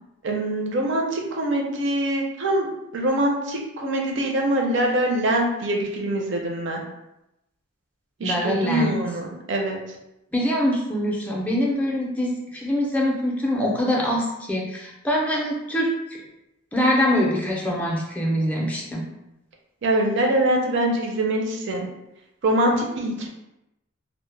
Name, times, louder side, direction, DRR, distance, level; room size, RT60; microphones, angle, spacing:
voice 1, 0.2-2.7 2.9-6.8 8.2-9.8 19.8-21.9 22.4-23.3, right 1 dB, 60° right, 1 dB, 0.5 m, -24 dB
voice 2, 8.2-9.0 10.3-15.9 16.7-19.0, equal, 5° left, -3 dB, 0.4 m, -24 dB
2.1 x 2.0 x 3.2 m, 0.89 s
head